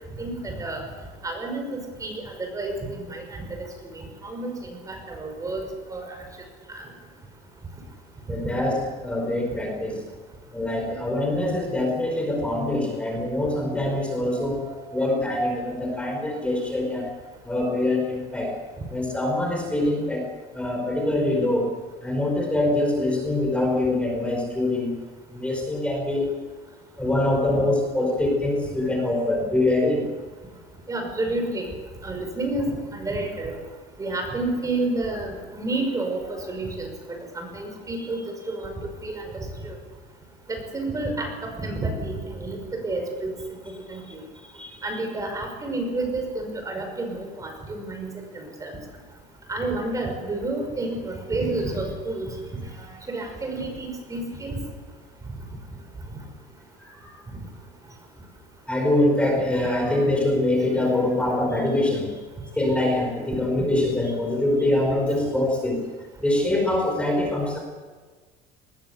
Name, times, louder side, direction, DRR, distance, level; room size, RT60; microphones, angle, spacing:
voice 1, 0.2-0.8 1.2-3.7 3.9-5.6 5.9-6.2 6.7-6.8 8.3-8.4 14.4-14.9 30.9-31.7 32.0-33.5 34.0-36.2 36.5-38.2 38.5-38.7 39.0-39.7 40.5-41.3 41.6-43.3 43.9-44.2 44.8-48.8 49.5-52.3 53.1-54.5, right 2 dB, 20° right, 3 dB, 5.7 m, -30 dB
voice 2, 8.3-10.0 10.5-17.1 17.4-18.5 18.9-20.3 20.5-21.7 22.0-25.0 25.3-26.3 27.0-30.1 43.9-44.0 44.5-44.8 56.8-57.1 58.7-62.1 62.5-65.8 66.2-67.6, left 1 dB, 5° left, 1 dB, 4.9 m, -24 dB
21.0 x 20.5 x 8.3 m, 1.4 s
cardioid pair, 140°, 18 cm